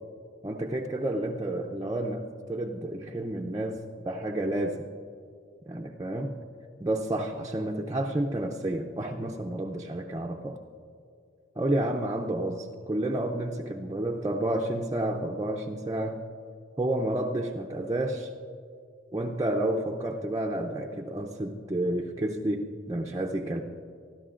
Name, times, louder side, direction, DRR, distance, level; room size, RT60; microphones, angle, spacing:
voice 1, 0.4-4.8 5.7-6.4 6.8-10.6 11.6-16.2 16.8-18.3 19.1-23.6, right 1 dB, 20° right, 0 dB, 0.5 m, -30 dB
25.0 x 13.0 x 2.5 m, 2.4 s
head